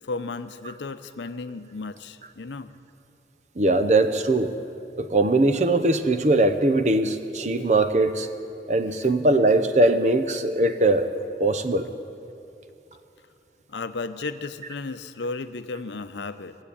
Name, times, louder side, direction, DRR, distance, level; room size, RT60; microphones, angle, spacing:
voice 1, 0.0-2.7 7.6-7.7 9.0-9.5 13.7-16.6, left 3 dB, 90° left, 11 dB, 0.6 m, -34 dB
voice 2, 3.6-4.5 5.0-8.3 8.7-11.1 11.4-11.9, right 2 dB, 40° right, 9 dB, 0.7 m, -21 dB
19.5 x 7.7 x 8.5 m, 2.7 s
head